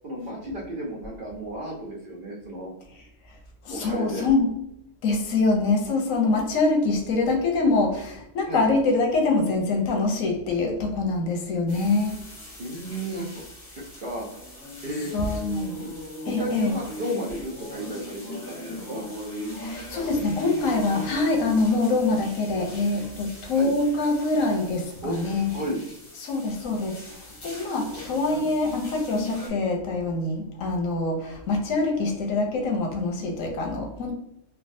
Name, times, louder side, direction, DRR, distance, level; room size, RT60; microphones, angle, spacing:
voice 1, 0.0-2.7 3.7-4.3 8.5-8.6 12.6-13.4 13.7-14.3 14.8-15.1 15.8-15.9 16.2-19.0 23.5-23.7 25.0-25.2 25.5-25.8 28.3-28.5, equal, 55° right, -3 dB, 0.6 m, -33 dB
voice 2, 3.6-4.5 5.0-12.2 15.1-15.9 16.3-16.7 19.6-25.5 26.2-27.2 27.4-34.1, left 3 dB, 85° left, 2 dB, 1.1 m, -24 dB
sound 1, 11.7-29.5, left 1 dB, 70° left, 1.5 m, -39 dB
3.4 x 2.3 x 2.6 m, 0.81 s
omnidirectional pair, 1.4 m